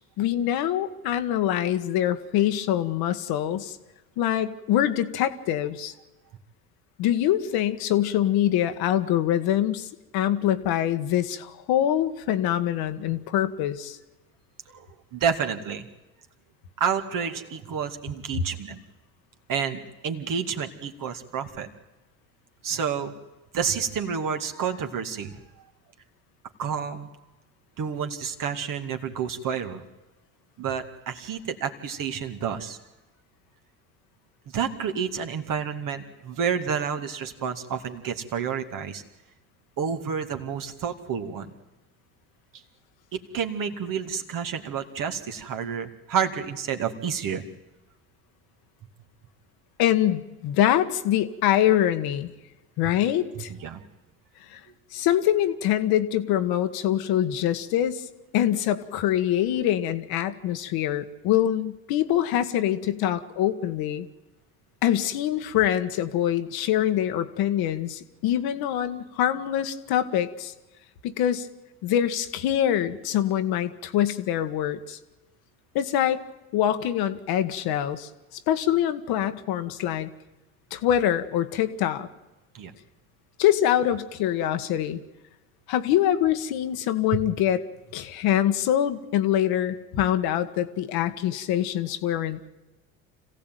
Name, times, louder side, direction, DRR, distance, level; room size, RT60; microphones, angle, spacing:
voice 1, 0.2-3.8 4.2-5.9 7.0-14.0 49.8-52.3 52.8-53.5 54.5-54.6 54.9-58.0 58.3-64.1 64.8-70.5 71.0-71.5 71.8-75.0 75.7-76.2 76.5-78.1 78.5-80.1 80.7-82.1 83.4-85.0 85.7-87.6 87.9-92.5, left 11 dB, 60° left, 9 dB, 1.5 m, -24 dB
voice 2, 15.1-15.9 16.8-18.8 19.5-21.7 22.6-23.1 23.5-25.4 26.6-27.1 27.8-29.9 30.6-32.8 34.5-39.0 39.8-41.5 42.5-42.6 43.1-47.4 53.4-53.8 82.5-82.7 87.1-87.2, right 7 dB, 50° right, 6 dB, 2.4 m, -29 dB
26.0 x 16.0 x 9.2 m, 1.1 s
hypercardioid pair, 65°, 41 cm